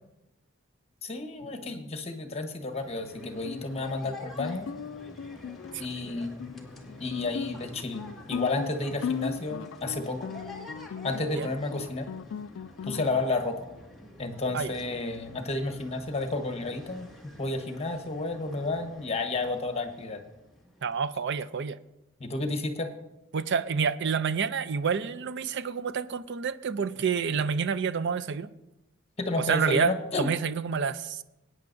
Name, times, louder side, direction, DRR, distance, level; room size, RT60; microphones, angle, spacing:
voice 1, 1.0-4.7 5.8-6.4 7.0-10.3 11.0-12.1 12.9-13.6 14.2-17.1 17.4-20.2 22.2-22.9 29.2-30.3, left 2 dB, 30° left, 1.2 m, -31 dB
sound 1, 2.6-21.1, left 1 dB, ahead, 1.9 m, -49 dB
Guitar, 3.2-13.2, left 7 dB, 70° left, 0.3 m, -38 dB
voice 2, 20.8-21.8 23.3-28.5 29.4-31.2, right 6 dB, 60° right, 0.5 m, -28 dB
20.5 x 9.4 x 2.6 m
head